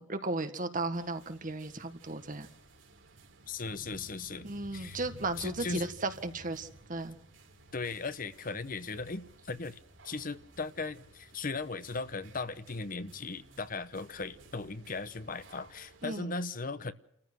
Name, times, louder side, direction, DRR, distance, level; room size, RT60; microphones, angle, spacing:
voice 1, 0.0-2.5 4.4-7.2 16.0-16.3, right 2 dB, 45° right, 8 dB, 1.7 m, -35 dB
sound 1, 0.9-16.2, right 1 dB, 80° right, 3.6 m, -55 dB
voice 2, 3.5-5.0 5.4-5.9 7.7-9.8 10.0-16.9, left 4 dB, 45° left, 13 dB, 1.0 m, -38 dB
29.5 x 14.5 x 6.2 m, 0.76 s
head